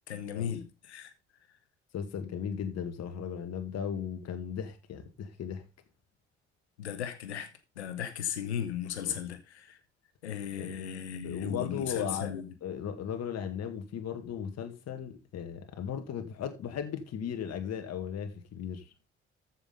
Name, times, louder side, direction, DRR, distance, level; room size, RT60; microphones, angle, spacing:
voice 1, 0.1-1.1 6.8-9.8 10.2-12.5, left 9 dB, 85° left, 1.5 m, -36 dB
voice 2, 1.9-5.6 9.0-9.2 10.6-10.9 11.2-12.3 12.6-18.9, left 8 dB, 50° left, 2.0 m, -36 dB
14.0 x 6.3 x 3.8 m
figure-of-eight pair, 50°, 33 cm